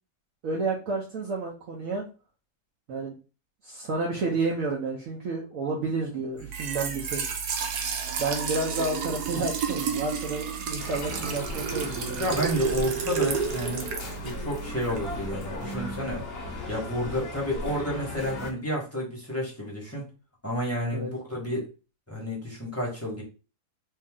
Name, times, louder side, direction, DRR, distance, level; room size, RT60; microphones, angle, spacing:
voice 1, 0.4-2.1 2.9-3.1 3.6-7.2 8.2-12.3 20.9-21.1, right 3 dB, 65° right, -2 dB, 1.1 m, -30 dB
Trickle dribble / Fill (with liquid), 6.4-15.2, right 7 dB, 85° right, 1.3 m, -31 dB
sound 1, 10.8-18.5, left 2 dB, 50° left, 0.9 m, -37 dB
voice 2, 12.1-13.9 14.2-16.3 16.7-20.1 20.4-21.7 22.1-23.2, equal, 10° left, -4 dB, 1.0 m, -30 dB
3.0 x 2.8 x 3.6 m, 0.33 s
omnidirectional pair, 1.7 m